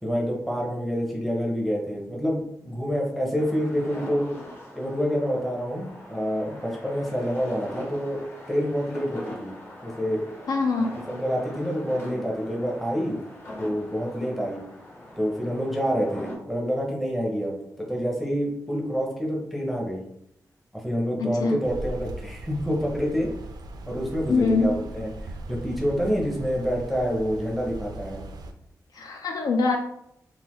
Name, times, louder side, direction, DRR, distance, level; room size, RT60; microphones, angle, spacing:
voice 1, 0.0-4.3 4.7-8.2 8.5-9.5 9.8-10.2 11.1-13.2 13.6-14.6 15.2-20.0 20.7-23.3 23.9-28.2, equal, ahead, -2 dB, 0.6 m, -27 dB
sound 1, 3.3-16.3, left 1 dB, 35° left, 1.1 m, -42 dB
voice 2, 10.5-10.9 21.2-21.6 24.3-24.8 28.9-29.8, left 3 dB, 70° left, 3 dB, 0.4 m, -23 dB
sound 2, 21.6-28.5, right 2 dB, 90° right, 0.4 m, -39 dB
3.8 x 2.5 x 2.9 m, 0.76 s
wide cardioid pair, 145°, 7 cm